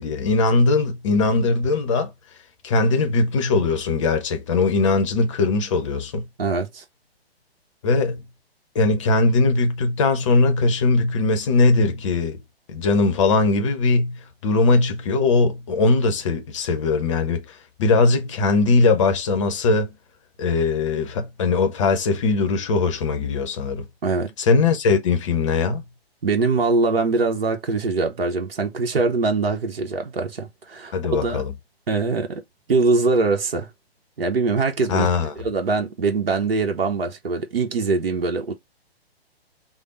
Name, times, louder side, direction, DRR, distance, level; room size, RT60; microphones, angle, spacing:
voice 1, 0.0-2.1 2.6-6.2 7.8-8.2 8.7-12.4 12.7-17.4 17.8-19.9 20.4-23.9 24.4-25.8 30.9-31.5 34.9-35.3, left 3 dB, 30° left, 0.6 m, -20 dB
voice 2, 6.4-6.8 24.0-24.3 26.2-31.4 31.9-32.4 32.7-33.7 34.2-35.1 35.4-38.5, right 3 dB, 65° right, 0.9 m, -22 dB
3.3 x 2.0 x 3.9 m
figure-of-eight pair, 130°, 31 cm